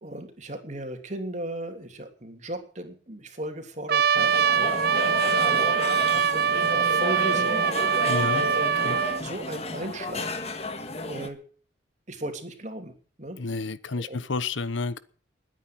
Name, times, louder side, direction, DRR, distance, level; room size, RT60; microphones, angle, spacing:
voice 1, 0.0-7.6 8.3-8.8 9.2-10.4 11.0-11.4 12.1-12.9 13.2-13.4 13.9-14.2, right 1 dB, 40° right, 3.1 m, -37 dB
Trumpet, 3.9-9.2, right 7 dB, 55° right, 0.6 m, -23 dB
sound 1, 4.1-11.3, left 2 dB, 35° left, 1.7 m, -32 dB
voice 2, 8.1-8.5 8.8-9.0 13.4-15.0, left 3 dB, 85° left, 1.0 m, -30 dB
20.5 x 9.3 x 6.2 m
head